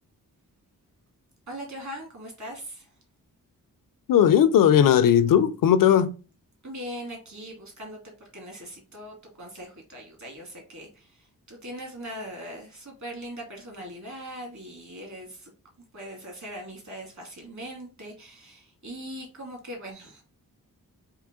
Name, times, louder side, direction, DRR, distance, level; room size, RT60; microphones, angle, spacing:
voice 1, 1.5-2.9 6.6-15.5 15.9-20.2, equal, 55° right, 2.0 m, -40 dB
voice 2, 4.1-6.1, left 9 dB, 70° left, 0.5 m, -18 dB
3.8 x 2.9 x 3.6 m
wide cardioid pair, 85°, 34 cm